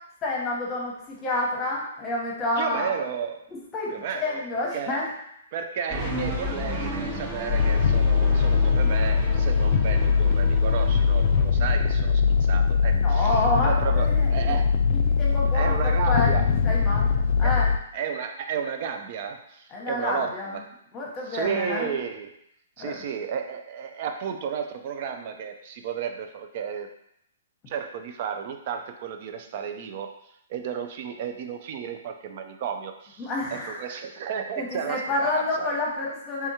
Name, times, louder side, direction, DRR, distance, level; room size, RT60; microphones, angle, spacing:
voice 1, 0.2-2.9 3.7-5.1 13.0-14.5 14.9-16.4 16.6-17.1 17.4-17.7 19.7-20.5 20.9-21.9 22.8-23.0 33.2-33.8 34.6-36.5, left 2 dB, 25° left, -3 dB, 1.0 m, -29 dB
voice 2, 2.6-3.5 3.9-5.1 5.5-14.7 15.5-16.5 17.4-17.6 17.9-20.6 21.3-22.3 22.8-26.9 27.7-30.1 30.5-35.8, right 7 dB, 45° right, 6 dB, 0.5 m, -33 dB
sound 1, 5.9-11.4, equal, 20° right, 0.8 m, -33 dB
sound 2, 7.5-17.8, left 5 dB, 55° left, 0.3 m, -21 dB
3.4 x 3.4 x 2.8 m, 0.74 s
hypercardioid pair, 135°, 0 cm